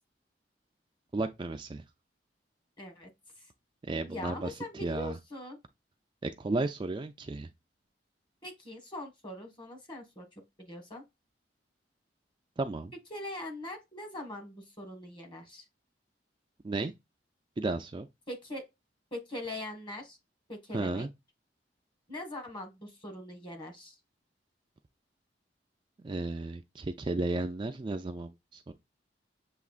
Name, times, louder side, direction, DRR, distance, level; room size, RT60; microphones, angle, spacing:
voice 1, 1.1-1.8 3.9-4.5 4.8-5.2 6.2-7.5 12.6-12.9 16.6-16.9 17.6-18.1 20.7-21.1 26.0-28.7, right 2 dB, 25° right, 0.4 m, -33 dB
voice 2, 2.8-3.1 3.4-3.5 4.1-5.6 8.4-10.2 10.6-11.0 13.1-15.7 18.3-18.7 19.1-20.2 20.5-21.1 22.1-24.0, left 1 dB, 25° left, 1.5 m, -42 dB
7.1 x 2.9 x 2.4 m
head